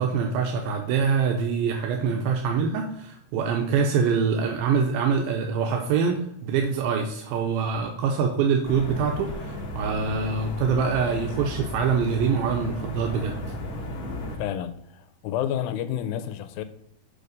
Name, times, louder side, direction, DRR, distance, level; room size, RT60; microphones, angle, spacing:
voice 1, 0.0-13.4, right 6 dB, 85° right, 2.5 m, -25 dB
sound 1, 8.6-14.4, left 1 dB, 65° left, 1.3 m, -34 dB
voice 2, 14.4-16.6, left 10 dB, 85° left, 2.4 m, -30 dB
6.7 x 4.8 x 5.1 m
omnidirectional pair, 4.1 m